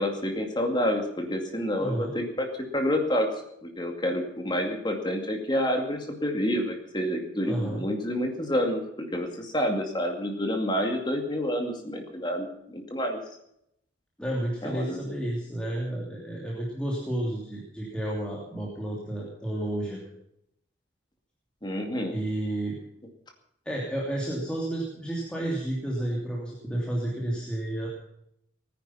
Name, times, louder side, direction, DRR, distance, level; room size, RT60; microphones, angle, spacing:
voice 1, 0.0-2.5 2.7-3.3 3.6-13.2 14.6-15.0 21.6-22.1, equal, 25° left, 3 dB, 2.3 m, -28 dB
voice 2, 1.8-2.1 7.4-7.8 14.2-20.1 22.1-22.8 23.6-27.9, right 1 dB, 5° left, -4 dB, 3.0 m, -31 dB
19.5 x 10.5 x 5.7 m, 0.75 s
head